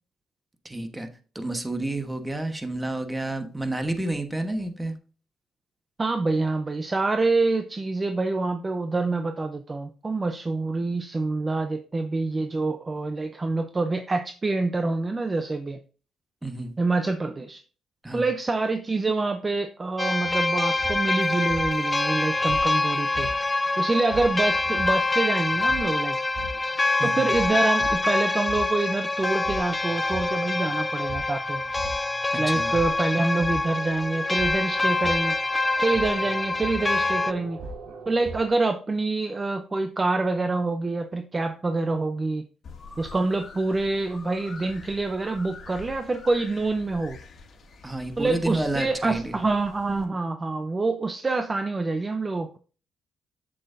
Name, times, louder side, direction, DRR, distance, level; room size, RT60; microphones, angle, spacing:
voice 1, 0.6-1.1 1.3-4.9 16.4-16.8 18.0-18.3 27.0-27.3 32.3-32.7 47.8-49.3, right 2 dB, 10° right, 7 dB, 1.2 m, -30 dB
voice 2, 6.0-15.8 16.8-17.6 18.1-23.3 23.8-26.2 27.0-31.6 32.4-35.4 35.8-37.6 38.1-42.4 43.0-47.2 48.2-52.6, right 3 dB, 25° right, 8 dB, 0.6 m, -26 dB
sound 1, 20.0-37.3, left 2 dB, 20° left, 0.4 m, -25 dB
sound 2, 20.2-38.5, right 2 dB, 75° right, 3.7 m, -40 dB
sound 3, 42.6-50.0, left 4 dB, 50° left, 2.1 m, -46 dB
7.8 x 7.3 x 2.7 m, 0.37 s
cardioid pair, 90°, 0 cm